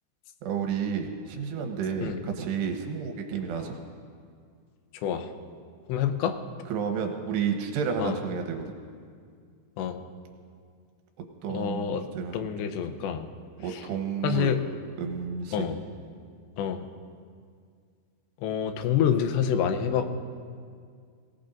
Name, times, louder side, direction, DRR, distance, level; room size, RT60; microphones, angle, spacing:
voice 1, 0.4-3.8 6.7-8.7 11.4-12.4 13.6-14.5 15.0-15.7, right 6 dB, 80° right, 3 dB, 3.3 m, -31 dB
voice 2, 5.9-6.4 8.0-8.2 9.8-10.0 11.5-12.1 12.3-13.3 13.7-13.9 14.2-14.6 15.5-15.8 16.6-16.9 18.4-20.1, left 8 dB, 85° left, 7 dB, 3.1 m, -27 dB
23.0 x 17.5 x 2.6 m, 2.1 s
omnidirectional pair, 5.0 m